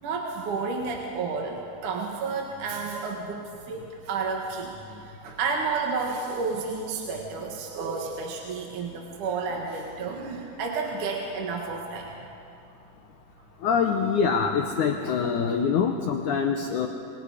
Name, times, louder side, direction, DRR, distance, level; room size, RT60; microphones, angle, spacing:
voice 1, 0.0-4.7 5.0-12.2, right 4 dB, 55° right, 0 dB, 2.7 m, -31 dB
voice 2, 13.6-16.9, left 6 dB, 80° left, 3 dB, 1.7 m, -24 dB
27.5 x 23.5 x 5.0 m, 2.5 s
omnidirectional pair, 4.9 m